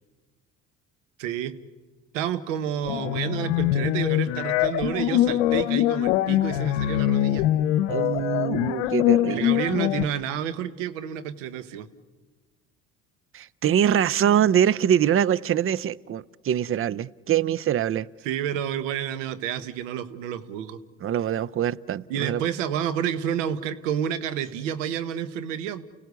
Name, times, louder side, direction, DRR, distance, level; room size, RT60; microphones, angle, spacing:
voice 1, 1.2-1.5 2.1-7.5 9.2-11.9 18.2-20.8 22.1-25.8, right 9 dB, 85° right, 13 dB, 1.3 m, -30 dB
sound 1, 2.9-10.0, left 13 dB, 80° left, 0.8 m, -23 dB
voice 2, 7.9-9.6 13.3-18.1 21.0-22.4, right 9 dB, 35° right, 22 dB, 0.6 m, -24 dB
29.5 x 16.5 x 8.1 m, 1.4 s
hypercardioid pair, 70°, 37 cm